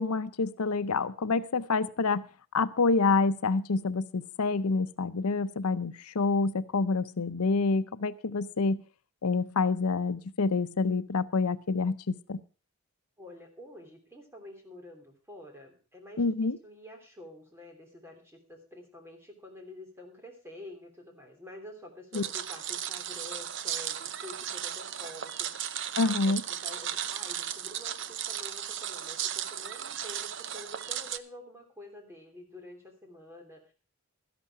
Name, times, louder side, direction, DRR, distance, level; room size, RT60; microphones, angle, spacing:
voice 1, 0.0-2.2 2.5-8.8 9.2-12.4 16.2-16.6 22.1-22.2 26.0-26.4, left 4 dB, 85° left, 13 dB, 0.7 m, -27 dB
voice 2, 13.2-33.7, left 1 dB, 10° right, 3 dB, 3.2 m, -48 dB
sound 1, 22.1-31.2, right 10 dB, 55° right, 0.7 m, -36 dB
13.0 x 11.0 x 4.8 m, 0.36 s
head